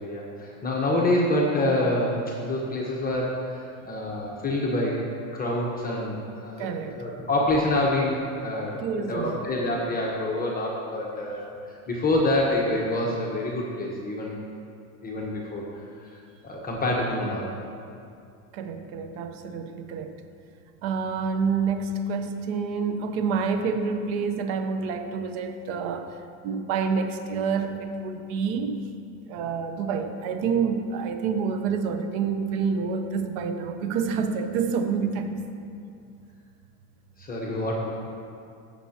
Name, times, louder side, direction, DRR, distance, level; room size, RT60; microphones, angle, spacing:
voice 1, 0.0-5.0 5.3-8.8 9.1-11.5 11.9-14.4 15.0-15.6 16.4-17.5 37.2-37.9, left 1 dB, 20° left, -3 dB, 1.2 m, -26 dB
voice 2, 6.6-7.0 8.8-9.4 18.5-20.2 20.8-26.2 26.4-28.8 29.3-35.5, right 5 dB, 70° right, 7 dB, 0.9 m, -28 dB
15.0 x 7.0 x 2.9 m, 2.5 s
supercardioid pair, 120°, 43 cm